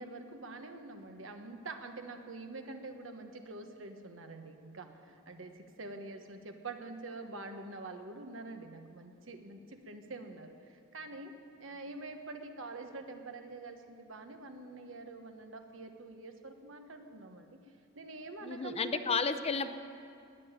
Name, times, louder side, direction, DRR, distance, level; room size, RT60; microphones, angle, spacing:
voice 1, 0.0-17.6 17.9-19.3, right 3 dB, 85° right, 6 dB, 1.2 m, -46 dB
voice 2, 18.4-19.7, left 5 dB, 30° left, 10 dB, 0.6 m, -32 dB
20.0 x 6.9 x 8.8 m, 2.4 s
head